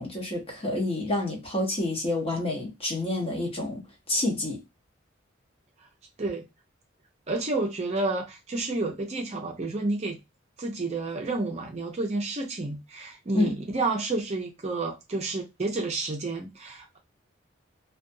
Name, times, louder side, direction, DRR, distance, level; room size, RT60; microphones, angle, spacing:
voice 1, 0.0-4.6 13.3-13.5, left 2 dB, 30° left, 0.8 m, -28 dB
voice 2, 7.3-10.2 10.6-17.0, right 2 dB, 35° right, 0.5 m, -30 dB
2.4 x 2.3 x 2.6 m
head